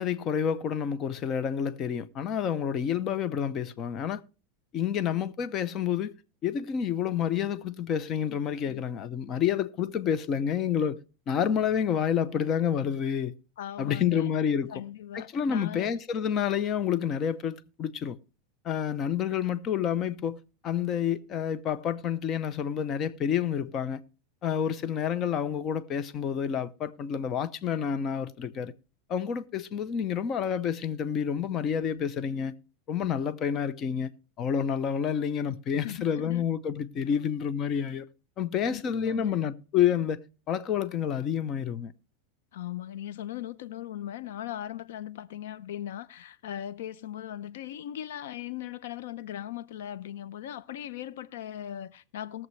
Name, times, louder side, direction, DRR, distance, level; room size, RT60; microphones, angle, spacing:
voice 1, 0.0-4.2 4.7-6.1 6.4-11.0 11.3-13.4 13.8-14.7 15.1-18.2 18.6-24.0 24.4-28.7 29.1-32.5 32.9-34.1 34.4-38.1 38.4-40.2 40.5-41.9, left 8 dB, 30° left, 0.7 m, -29 dB
voice 2, 13.6-14.3 14.7-16.0 35.5-36.5 37.1-37.2 38.6-39.3 42.5-52.5, left 11 dB, 80° left, 0.6 m, -39 dB
20.0 x 7.2 x 3.2 m
supercardioid pair, 150°, 0 cm